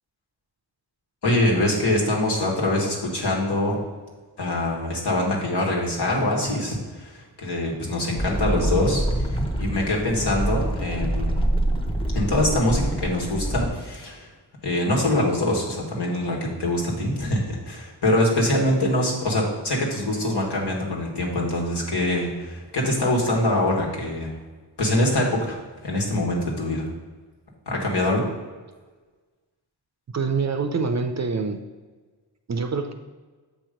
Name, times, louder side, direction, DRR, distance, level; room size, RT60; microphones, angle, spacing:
voice 1, 1.2-3.8 4.4-9.0 9.6-11.4 12.1-14.3 14.6-24.3 24.8-26.9 27.6-28.3, left 1 dB, 65° left, -2 dB, 1.6 m, -24 dB
sound 1, 8.2-13.7, right 1 dB, 10° left, 0.8 m, -25 dB
voice 2, 30.1-31.6 32.5-32.9, right 4 dB, 40° right, 7 dB, 0.5 m, -25 dB
7.1 x 2.9 x 5.1 m, 1.4 s
cardioid pair, 55°, 44 cm